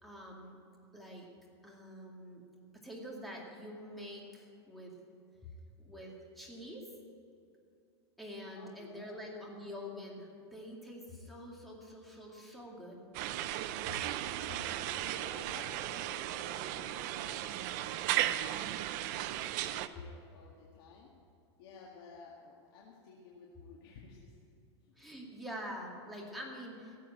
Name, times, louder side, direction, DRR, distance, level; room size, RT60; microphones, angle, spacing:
voice 1, 0.0-0.6 0.9-1.3 1.6-2.4 2.7-4.9 5.8-6.8 8.2-13.0 13.8-13.9 25.0-27.0, equal, ahead, -3 dB, 2.2 m, -46 dB
voice 2, 8.4-9.6 14.0-19.1 19.5-21.1 21.6-24.4 24.8-24.9, left 4 dB, 55° left, -3 dB, 2.1 m, -55 dB
sound 1, 13.1-19.9, right 13 dB, 40° right, 0.6 m, -36 dB
17.0 x 7.6 x 8.9 m, 2.6 s
supercardioid pair, 170°, 14 cm